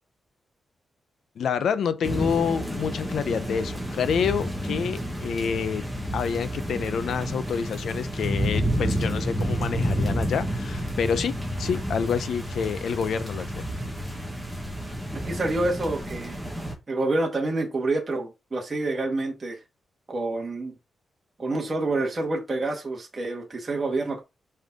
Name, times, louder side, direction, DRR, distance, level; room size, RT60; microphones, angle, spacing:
voice 1, 1.4-13.7, left 7 dB, 75° left, 0.7 m, -28 dB
sound 1, 2.0-16.7, equal, ahead, 1.8 m, -30 dB
voice 2, 15.1-16.4 16.9-19.6 20.1-20.7 21.4-24.2, right 2 dB, 25° right, 1.8 m, -27 dB
5.5 x 5.4 x 3.7 m
wide cardioid pair, 150°, 0 cm